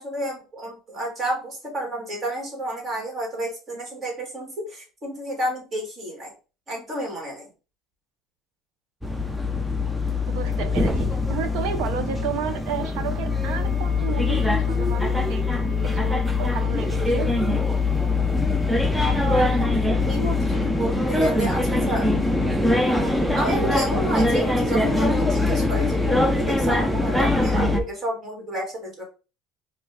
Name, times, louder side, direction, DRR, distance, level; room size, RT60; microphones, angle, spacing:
voice 1, 0.0-6.3 6.7-7.4 19.0-19.7 20.1-22.6 23.3-29.0, right 1 dB, 30° right, 0 dB, 2.0 m, -30 dB
sound 1, 9.0-27.8, left 2 dB, 5° right, 0.5 m, -22 dB
voice 2, 10.3-15.4 15.7-17.3, right 8 dB, 75° right, 7 dB, 0.7 m, -32 dB
4.2 x 2.6 x 3.4 m, 0.32 s
cardioid pair, 135°, 0 cm